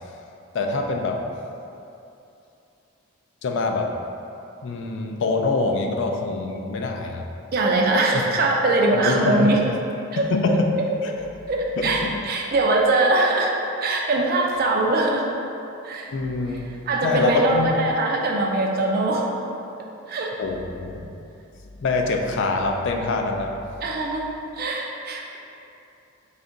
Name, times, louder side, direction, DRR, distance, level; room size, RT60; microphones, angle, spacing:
voice 1, 0.5-1.3 3.4-3.9 4.6-7.3 8.1-8.3 8.9-9.5 10.2-10.8 11.8-12.2 16.1-16.7 17.0-17.9 20.4-21.1 21.8-23.6, left 3 dB, 55° left, 3 dB, 0.3 m, -24 dB
voice 2, 7.5-9.6 10.1-10.3 11.5-13.5 13.8-15.3 15.8-16.1 16.9-19.3 20.1-20.3 23.8-24.3 24.6-25.4, right 2 dB, 45° right, 0 dB, 0.4 m, -22 dB
4.3 x 2.4 x 3.8 m, 2.8 s
head